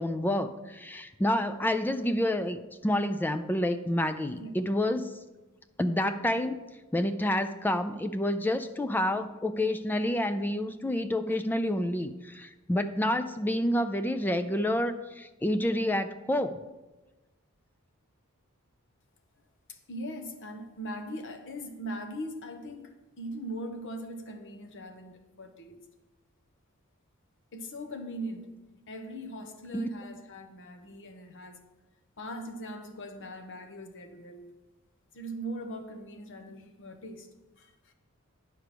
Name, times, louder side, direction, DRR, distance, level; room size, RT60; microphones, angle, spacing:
voice 1, 0.0-5.1 5.8-6.6 6.9-16.6 29.7-29.9, left 1 dB, 10° left, 10 dB, 0.3 m, -29 dB
voice 2, 19.7-25.8 27.5-28.5 28.9-31.6 32.2-34.5 35.1-37.3 37.6-37.9, equal, 60° left, 7 dB, 1.0 m, -40 dB
10.0 x 4.7 x 6.7 m, 1.1 s
head